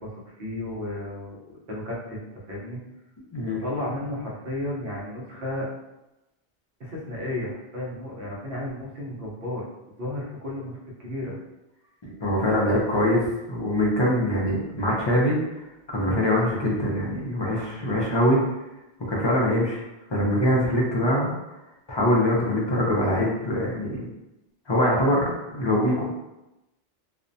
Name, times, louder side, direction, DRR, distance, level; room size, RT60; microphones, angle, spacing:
voice 1, 0.0-2.8 3.5-5.7 6.8-9.7 10.0-11.4 12.4-12.6 12.9-13.0, left 1 dB, 65° right, -4 dB, 0.9 m, -33 dB
voice 2, 3.3-3.6 12.0-15.4 15.9-18.4 19.1-19.8 20.1-21.3 21.9-24.1 24.7-26.0, left 1 dB, 40° left, -4 dB, 0.4 m, -23 dB
2.5 x 2.1 x 2.6 m, 0.95 s
omnidirectional pair, 1.1 m